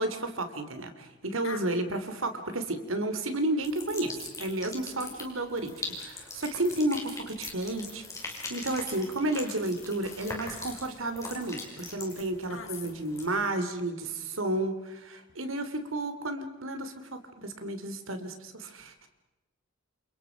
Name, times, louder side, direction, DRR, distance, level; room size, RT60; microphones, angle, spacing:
voice 1, 0.0-19.1, right 1 dB, 85° right, 8 dB, 3.1 m, -32 dB
voice 2, 1.4-1.8 4.9-5.2 12.1-13.1, left 5 dB, 75° left, 7 dB, 2.9 m, -44 dB
sound 1, 3.6-13.3, left 3 dB, 15° left, 5.5 m, -42 dB
29.0 x 28.5 x 5.2 m, 1.0 s
head